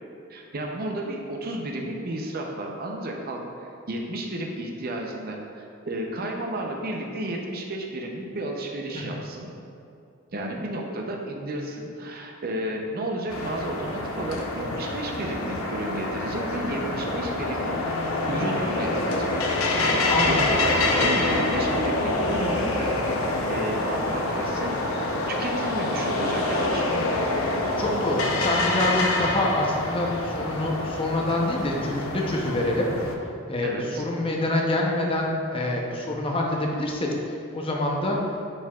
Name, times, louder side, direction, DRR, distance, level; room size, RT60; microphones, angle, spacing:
voice 1, 0.3-9.5 10.3-18.0 18.3-19.4 19.9-23.0 23.5-24.7 25.3-27.1 33.6-34.0, right 1 dB, 45° right, 1 dB, 0.6 m, -32 dB
sound 1, 13.3-33.2, left 2 dB, 75° left, 0.7 m, -26 dB
voice 2, 27.8-32.9 33.5-38.2, left 1 dB, 25° left, 0 dB, 0.7 m, -26 dB
9.7 x 4.6 x 2.4 m, 2.5 s
head